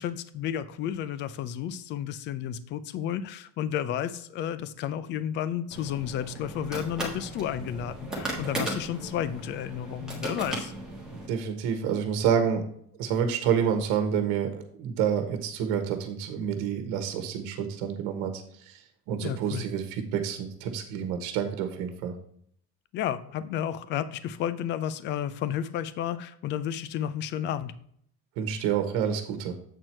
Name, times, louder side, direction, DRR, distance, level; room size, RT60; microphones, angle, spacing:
voice 1, 0.0-10.7 19.2-19.7 22.9-27.7, left 10 dB, 35° left, 14 dB, 0.4 m, -32 dB
sound 1, 5.7-11.3, right 1 dB, ahead, 1.5 m, -36 dB
voice 2, 11.1-12.6 13.0-22.2 28.4-29.5, right 8 dB, 90° right, 7 dB, 1.2 m, -28 dB
8.0 x 4.5 x 4.3 m, 0.66 s
cardioid pair, 180°, 31 cm